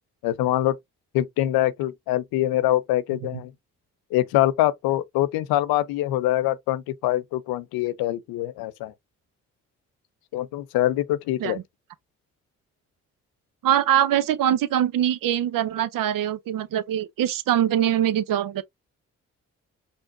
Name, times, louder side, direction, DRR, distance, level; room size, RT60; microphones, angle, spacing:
voice 1, 0.2-0.8 1.1-3.5 4.1-8.9 10.3-11.6, left 14 dB, 85° left, 0.5 m, -24 dB
voice 2, 13.6-18.6, right 11 dB, 70° right, 0.6 m, -23 dB
5.1 x 2.5 x 2.5 m
hypercardioid pair, 40°, 35 cm